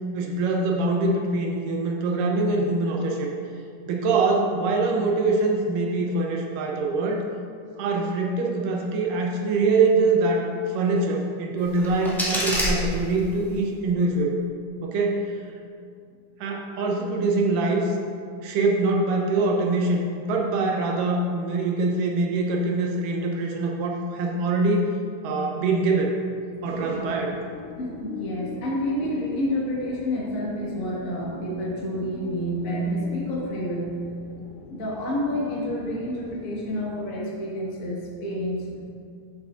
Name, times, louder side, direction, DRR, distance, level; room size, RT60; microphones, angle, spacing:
voice 1, 0.1-3.3 3.9-7.2 7.8-14.4 14.8-15.3 16.4-18.0 18.4-24.9 25.2-26.1 26.6-27.4, right 3 dB, 80° right, 1 dB, 2.2 m, -24 dB
sound 1, 11.6-13.6, equal, 5° left, 0.3 m, -28 dB
sound 2, 26.3-37.0, left 3 dB, 80° left, 1.8 m, -42 dB
voice 2, 27.8-34.0 34.7-38.8, equal, 50° left, -6 dB, 0.9 m, -29 dB
11.0 x 7.4 x 2.5 m, 2.4 s
omnidirectional pair, 4.0 m